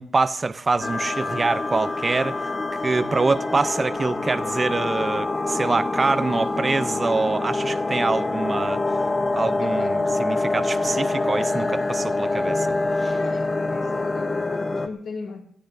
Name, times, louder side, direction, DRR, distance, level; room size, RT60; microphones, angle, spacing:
voice 1, 0.0-2.4 2.7-8.8 9.3-13.2, right 3 dB, 20° right, 0.5 m, -25 dB
sound 1, 0.8-14.9, left 2 dB, 20° left, 0.7 m, -25 dB
voice 2, 9.6-10.0 13.1-15.4, left 4 dB, 65° left, 2.1 m, -38 dB
28.0 x 15.5 x 2.6 m
wide cardioid pair, 165°, 0 cm